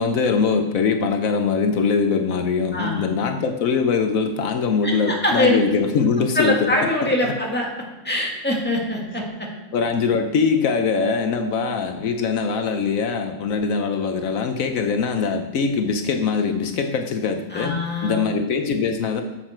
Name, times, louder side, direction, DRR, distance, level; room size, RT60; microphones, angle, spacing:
voice 1, 0.0-6.7 7.0-7.4 9.7-19.2, left 5 dB, 75° left, 6 dB, 1.2 m, -22 dB
voice 2, 2.7-3.0 4.8-5.6 6.4-7.7 8.0-9.5 17.5-18.2, left 1 dB, 5° left, -2 dB, 1.9 m, -23 dB
11.0 x 7.8 x 4.4 m, 1.1 s
omnidirectional pair, 1.5 m